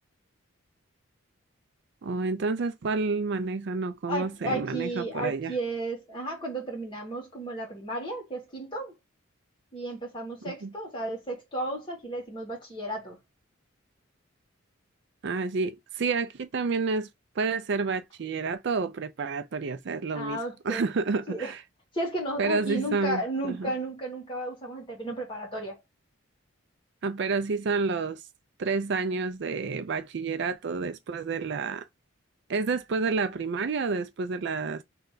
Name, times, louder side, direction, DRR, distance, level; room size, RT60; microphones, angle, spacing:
voice 1, 2.0-5.5 10.4-10.7 15.2-17.1 17.4-20.4 20.6-21.6 22.4-23.7 27.0-28.2 28.6-31.9 32.5-34.8, right 4 dB, 55° right, 0.4 m, -29 dB
voice 2, 4.1-8.9 9.7-13.2 20.1-20.8 21.3-21.5 21.9-25.8, right 1 dB, 25° left, 1.9 m, -33 dB
3.3 x 2.9 x 3.7 m
head